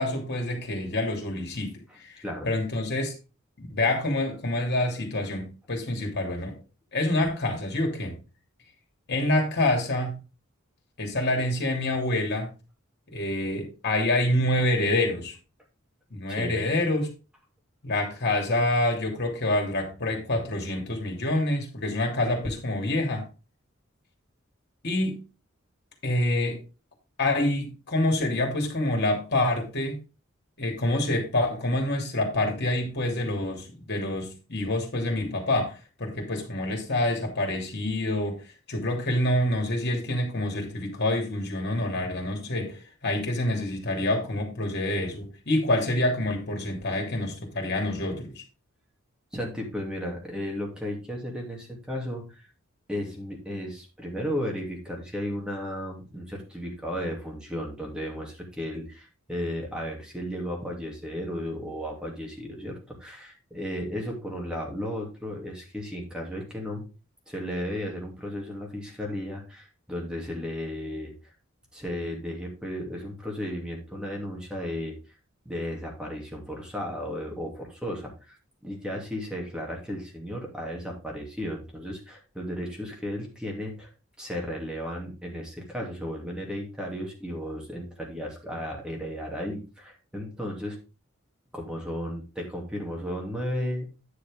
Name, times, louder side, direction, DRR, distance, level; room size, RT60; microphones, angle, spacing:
voice 1, 0.0-2.2 2.4-3.1 3.6-6.6 6.9-8.1 9.1-10.2 11.0-12.5 13.1-15.3 16.1-17.1 17.8-23.2 24.8-25.2 26.0-26.6 27.2-30.0 30.6-38.4 38.7-48.4, left 1 dB, 55° left, 3.0 m, -27 dB
voice 2, 16.3-16.6 49.3-52.4 52.9-66.8 67.3-71.1 71.7-74.9 75.4-78.4 78.6-83.9 84.2-90.8 91.5-93.9, equal, 5° right, 2.7 m, -34 dB
10.0 x 6.7 x 3.7 m
head